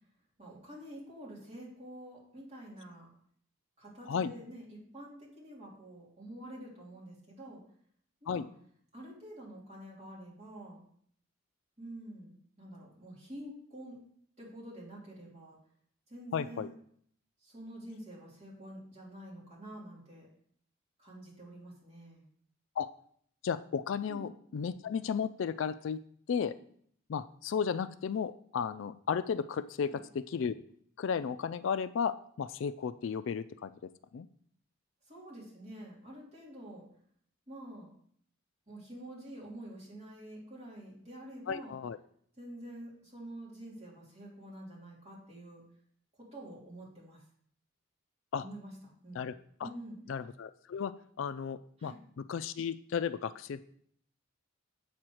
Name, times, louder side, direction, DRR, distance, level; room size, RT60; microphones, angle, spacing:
voice 1, 0.4-3.1 3.8-7.6 8.2-8.4 8.9-10.8 11.8-14.0 14.4-15.6 16.1-16.7 17.4-20.3 21.0-22.2 24.1-24.3 29.8-30.0 35.1-36.8 37.5-37.9 38.7-41.7 42.4-45.6 46.2-47.2 48.4-49.2 49.6-50.0 51.8-52.0, right 1 dB, 30° right, -5 dB, 3.2 m, -48 dB
voice 2, 16.3-16.7 22.8-22.9 23.4-26.0 26.3-26.6 27.1-30.6 31.0-34.3 41.5-42.0 48.3-48.4 49.1-49.3 49.6-49.7 50.1-51.9 52.3-53.6, left 6 dB, 65° left, 14 dB, 0.3 m, -34 dB
7.7 x 4.4 x 6.3 m, 0.63 s
head